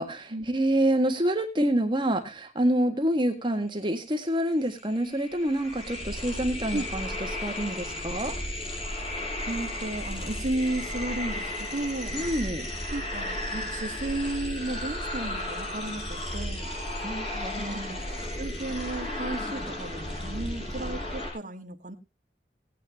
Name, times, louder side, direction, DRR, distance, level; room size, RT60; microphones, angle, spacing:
voice 1, 0.0-7.1 7.4-8.4 12.1-12.7 17.0-17.9, right 1 dB, 25° right, 6 dB, 1.7 m, -27 dB
sound 1, 4.3-4.4 4.6-21.3, left 1 dB, 35° left, 5.5 m, -34 dB
voice 2, 9.5-12.2 12.9-16.7 17.6-18.0 18.4-21.9, right 2 dB, 45° right, 4 dB, 1.8 m, -34 dB
18.0 x 9.4 x 2.9 m, 0.25 s
head